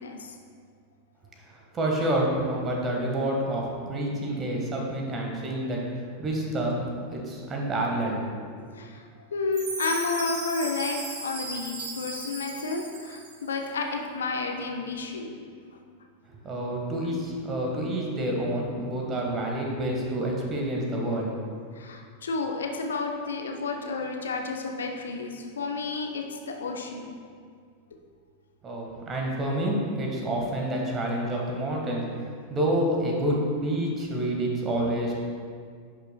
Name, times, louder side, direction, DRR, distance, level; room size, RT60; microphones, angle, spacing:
voice 1, 0.0-0.4 8.7-15.5 21.7-27.2 31.2-31.3, left 3 dB, 65° left, 2 dB, 0.6 m, -31 dB
voice 2, 1.7-5.8 6.2-6.8 7.1-8.2 8.6-8.7 16.3-21.3 28.6-35.1, right 1 dB, 25° right, 0 dB, 1.4 m, -28 dB
Chime, 9.5-13.5, right 3 dB, 50° right, 1.4 m, -36 dB
10.5 x 5.6 x 2.2 m, 2.1 s
figure-of-eight pair, 90°, 0 cm